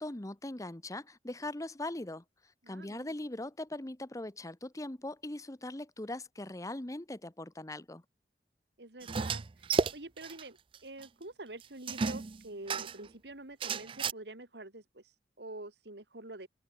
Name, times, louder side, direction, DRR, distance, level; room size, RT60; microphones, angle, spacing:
voice 1, 0.0-2.2 2.7-8.0, left 1 dB, 20° left, 1.0 m, -40 dB
voice 2, 2.6-3.1 8.8-16.5, right 2 dB, 65° right, 2.5 m, -47 dB
sound 1, 9.0-10.4 10.7-10.8 11.0-11.1 11.9-13.1 13.6-14.1, right 4 dB, 30° right, 0.4 m, -32 dB
open air
head